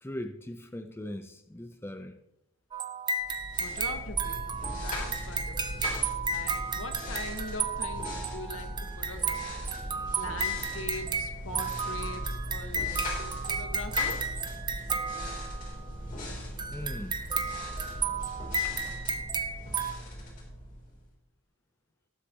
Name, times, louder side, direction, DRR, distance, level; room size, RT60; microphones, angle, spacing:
voice 1, 0.0-2.2 16.7-17.2 18.6-18.8, left 1 dB, 10° left, 0.6 m, -40 dB
sound 1, 2.7-15.8 16.6-19.9, right 4 dB, 20° right, 0.7 m, -33 dB
sound 2, 3.2-21.1, equal, 40° left, 3.4 m, -39 dB
voice 2, 3.6-5.8 6.3-9.4 10.2-14.2, left 2 dB, 70° left, 1.4 m, -42 dB
18.5 x 8.2 x 2.9 m
head